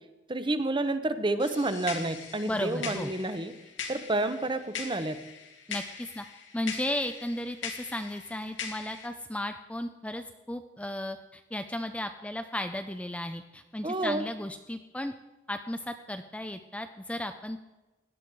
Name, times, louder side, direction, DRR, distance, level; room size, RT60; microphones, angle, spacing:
voice 1, 0.3-3.5 3.9-5.2 13.8-14.2, right 2 dB, 25° right, 10 dB, 0.9 m, -29 dB
sound 1, 1.4-9.1, left 6 dB, 90° left, 2.2 m, -41 dB
voice 2, 2.4-3.1 5.7-6.2 6.5-15.1 15.5-17.6, left 1 dB, 5° left, 7 dB, 0.5 m, -35 dB
17.0 x 11.5 x 4.7 m, 1.1 s
head